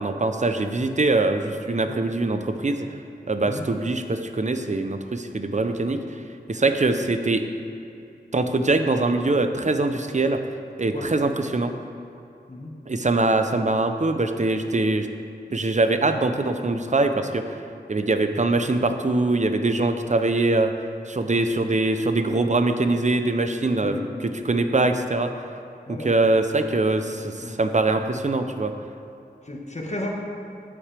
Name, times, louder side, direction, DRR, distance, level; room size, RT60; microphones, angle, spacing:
voice 1, 0.0-2.9 3.3-6.0 6.5-7.4 8.3-10.4 10.8-11.7 12.9-15.1 15.5-17.4 17.9-20.7 21.1-24.0 24.2-25.3 25.9-28.7, right 2 dB, 40° right, 7 dB, 0.7 m, -23 dB
voice 2, 23.8-24.1 25.9-26.1 27.4-27.6 29.4-30.1, left 1 dB, 40° left, -1 dB, 1.6 m, -33 dB
12.5 x 8.7 x 3.4 m, 2.6 s
wide cardioid pair, 45°, 18 cm